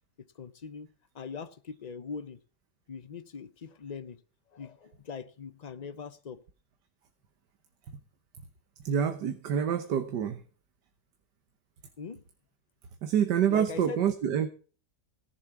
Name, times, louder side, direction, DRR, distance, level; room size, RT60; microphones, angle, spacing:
voice 1, 0.2-2.4 2.9-4.2 4.5-6.4 12.0-12.2 13.5-14.0, left 5 dB, 70° left, 0.4 m, -41 dB
voice 2, 8.8-10.4 13.0-14.5, right 8 dB, 75° right, 1.7 m, -27 dB
17.5 x 7.3 x 5.9 m
omnidirectional pair, 1.8 m